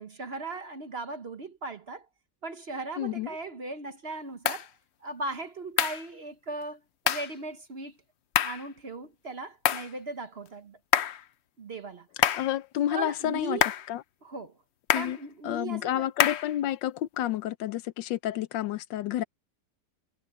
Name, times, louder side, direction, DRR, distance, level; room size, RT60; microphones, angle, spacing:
voice 1, 0.0-2.1 2.4-4.7 5.0-7.9 8.4-10.8 11.6-12.1 12.9-13.7 14.2-14.6 14.9-16.1, right 3 dB, 40° right, 1.0 m, -38 dB
voice 2, 3.0-3.3 12.3-13.6 13.9-14.0 14.9-15.2 15.4-19.2, left 12 dB, 85° left, 1.4 m, -30 dB
sound 1, 4.5-4.7 5.8-6.1 7.1-7.3 8.4-8.7 9.7-9.9 10.9-11.2 12.2-12.5 13.6-13.9 14.9-15.2 16.2-16.5, left 10 dB, 70° left, 0.6 m, -26 dB
omnidirectional pair, 1.9 m